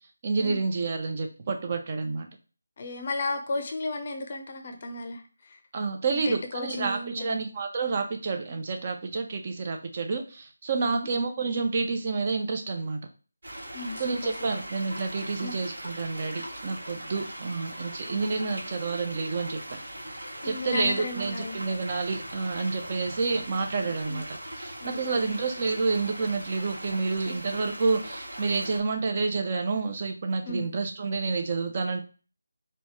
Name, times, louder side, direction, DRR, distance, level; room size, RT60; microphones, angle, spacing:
voice 1, 0.2-2.3 5.7-13.0 14.0-19.8 20.4-32.0, right 4 dB, 35° right, 5 dB, 0.6 m, -29 dB
voice 2, 2.8-5.6 6.1-7.4 10.9-11.1 13.7-14.3 15.4-15.5 20.4-21.6 23.8-24.2 24.8-25.4 30.4-30.7, left 2 dB, 40° left, 6 dB, 0.5 m, -34 dB
sound 1, 13.4-28.8, right 1 dB, 80° right, 1.2 m, -40 dB
4.1 x 2.3 x 2.9 m, 0.35 s
figure-of-eight pair, 160°, 0 cm